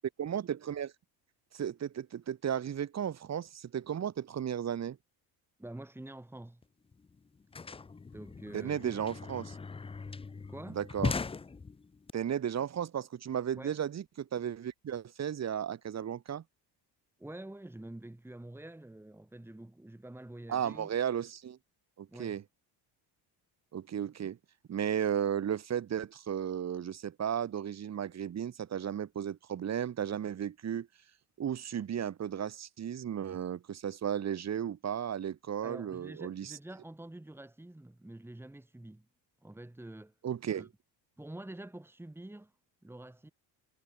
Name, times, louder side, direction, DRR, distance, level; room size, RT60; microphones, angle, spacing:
voice 1, 0.2-0.9 1.5-5.0 8.5-9.6 10.7-11.1 12.1-16.4 20.5-21.6 22.0-22.4 23.7-24.4 24.7-30.9 31.4-36.5 40.2-40.7, right 9 dB, 35° right, 2.7 m, -34 dB
voice 2, 5.6-6.6 8.1-8.9 10.5-10.8 13.6-13.8 17.2-20.9 22.1-22.4 35.6-39.1 39.4-40.1 40.5-40.7 41.2-42.5 42.8-43.3, right 1 dB, 5° right, 4.4 m, -47 dB
sound 1, 6.6-6.7 6.9-12.1, left 4 dB, 15° left, 0.7 m, -39 dB
cardioid pair, 155°, 44 cm